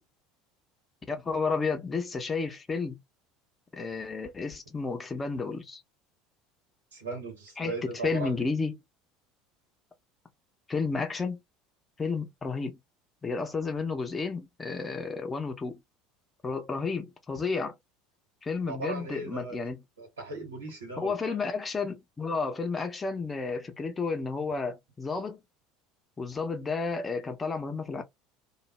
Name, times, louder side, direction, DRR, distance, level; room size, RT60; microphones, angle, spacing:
voice 1, 1.1-3.0 3.7-5.8 7.6-8.8 10.7-11.4 12.0-12.8 13.2-15.8 16.4-17.8 18.4-19.8 21.0-25.4 26.2-28.0, left 4 dB, 20° left, 0.7 m, -32 dB
voice 2, 6.9-8.4 18.6-19.6 20.0-21.4, right 3 dB, 80° right, 1.2 m, -38 dB
2.4 x 2.0 x 3.2 m
figure-of-eight pair, 70°, 0 cm